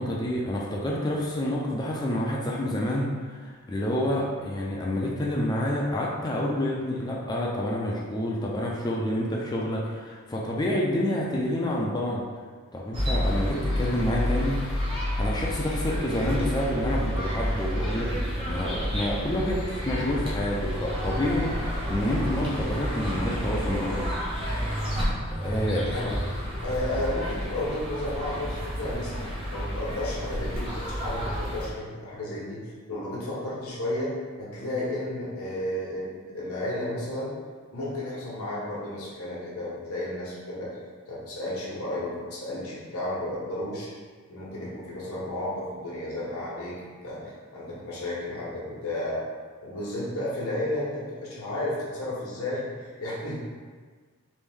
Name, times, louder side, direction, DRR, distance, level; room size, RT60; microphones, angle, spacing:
voice 1, 0.0-12.2 12.7-14.6 15.2-24.0 25.4-26.2, left 1 dB, 20° left, -3 dB, 0.3 m, -28 dB
sound 1, 12.9-31.7, equal, 25° right, 0.6 m, -30 dB
voice 2, 25.8-26.2 26.6-29.1 29.5-32.6 32.9-34.1 34.4-37.3 37.7-40.8 41.1-43.9 44.3-49.2 49.6-53.4, left 1 dB, 85° left, -7 dB, 1.0 m, -33 dB
3.2 x 2.6 x 3.4 m, 1.5 s
head